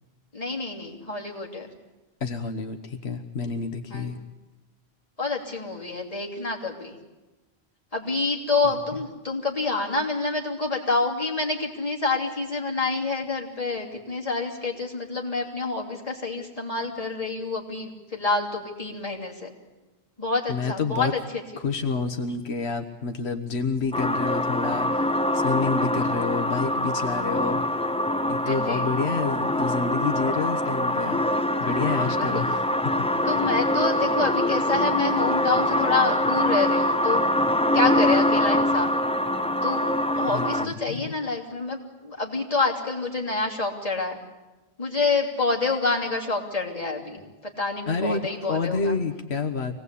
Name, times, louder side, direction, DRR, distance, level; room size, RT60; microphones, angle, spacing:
voice 1, 0.3-1.7 3.9-4.2 5.2-7.0 7.9-19.5 20.2-21.2 28.4-28.9 31.7-32.4 33.2-37.3 37.7-39.0 39.6-39.8 40.1-44.2 44.8-49.0, left 3 dB, 35° left, -3 dB, 3.2 m, -27 dB
voice 2, 2.2-4.2 8.7-8.8 20.5-21.1 21.6-25.1 25.3-27.6 28.3-31.2 31.6-32.6 33.1-33.3 40.3-41.0 47.9-48.2 48.5-49.7, left 4 dB, 90° left, 6 dB, 1.4 m, -28 dB
sound 1, 23.9-40.7, left 1 dB, 10° left, 0.5 m, -24 dB
25.0 x 18.5 x 8.4 m, 1.1 s
omnidirectional pair, 1.1 m